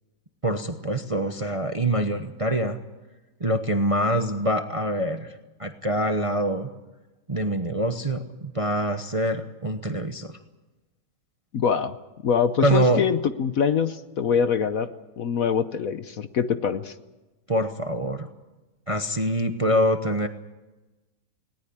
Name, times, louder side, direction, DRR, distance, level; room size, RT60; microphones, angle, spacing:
voice 1, 0.4-2.8 3.4-5.3 5.6-6.7 7.3-10.4 12.6-13.0 17.5-18.3 18.9-20.3, right 1 dB, 25° right, 7 dB, 0.8 m, -25 dB
voice 2, 11.5-12.0 12.2-14.9 15.2-16.9, left 7 dB, 60° left, 11 dB, 1.2 m, -24 dB
20.0 x 18.5 x 8.7 m, 1.1 s
omnidirectional pair, 1.9 m